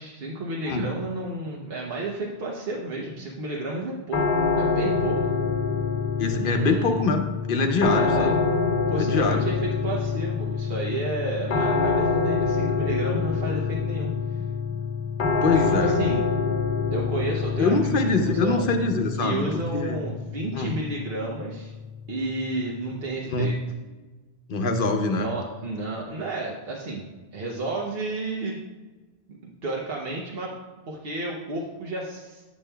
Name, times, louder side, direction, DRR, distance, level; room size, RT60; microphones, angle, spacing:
voice 1, 0.0-5.3 6.4-6.9 7.9-8.3 8.9-14.4 15.5-16.2 16.9-18.6 19.2-21.7 22.1-23.6 25.2-27.1 27.3-28.6 29.4-30.5 30.9-32.4, right 2 dB, 65° right, -3 dB, 1.0 m, -31 dB
sound 1, 4.1-23.0, left 4 dB, 75° left, 1.0 m, -26 dB
voice 2, 6.2-7.2 7.5-8.4 9.0-9.5 15.4-16.0 17.6-20.1 20.5-20.7 23.3-23.5 24.5-25.3, left 3 dB, 60° left, 5 dB, 0.8 m, -24 dB
8.4 x 7.1 x 2.2 m, 1.2 s
omnidirectional pair, 1.1 m